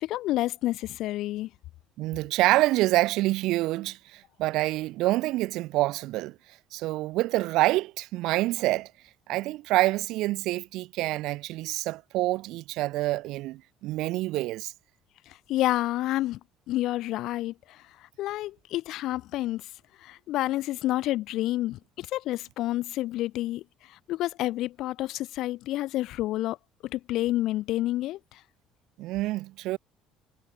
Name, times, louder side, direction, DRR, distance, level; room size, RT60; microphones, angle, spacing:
voice 1, 0.0-1.5 15.3-16.4 16.7-17.8 18.2-19.7 20.0-23.6 23.9-26.6 26.8-28.4, left 15 dB, 60° left, 4.4 m, -29 dB
voice 2, 2.0-8.9 9.3-14.7 29.0-29.8, right 18 dB, 70° right, 3.1 m, -27 dB
cardioid pair, 150°, 0 cm